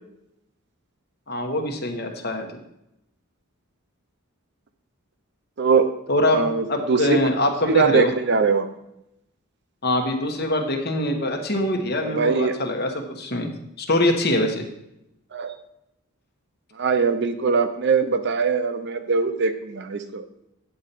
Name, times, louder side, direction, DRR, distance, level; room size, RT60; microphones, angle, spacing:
voice 1, 1.3-2.5 6.1-6.4 6.7-8.1 9.8-13.5 13.8-14.7, left 1 dB, 45° left, 4 dB, 1.2 m, -23 dB
voice 2, 5.6-5.9 6.3-7.3 7.7-8.7 12.0-12.5 15.3-15.5 16.8-20.2, right 5 dB, 50° right, 9 dB, 0.6 m, -21 dB
9.3 x 4.2 x 6.8 m, 0.84 s
head